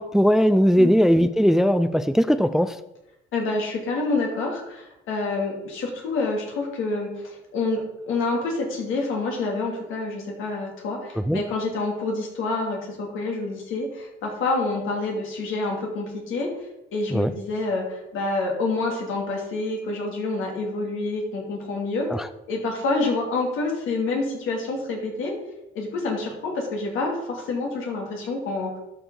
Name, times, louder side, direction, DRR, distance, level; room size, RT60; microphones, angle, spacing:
voice 1, 0.0-2.8 11.3-11.4 17.1-17.3 22.1-22.3, equal, ahead, 13 dB, 0.4 m, -19 dB
voice 2, 3.3-16.5 16.9-22.1 22.5-25.3 25.7-28.8, left 3 dB, 85° left, 0 dB, 2.5 m, -27 dB
12.0 x 5.0 x 3.9 m, 0.89 s
cardioid pair, 90°, 20 cm